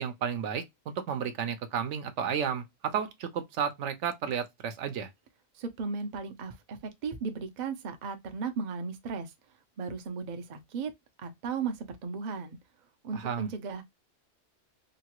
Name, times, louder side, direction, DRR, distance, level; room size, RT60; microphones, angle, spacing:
voice 1, 0.0-5.1 13.1-13.5, right 7 dB, 75° right, 0.9 m, -32 dB
voice 2, 5.5-9.3 9.8-10.9 11.2-12.6 13.0-13.8, right 5 dB, 50° right, 0.5 m, -36 dB
2.9 x 2.3 x 2.8 m
omnidirectional pair, 1.3 m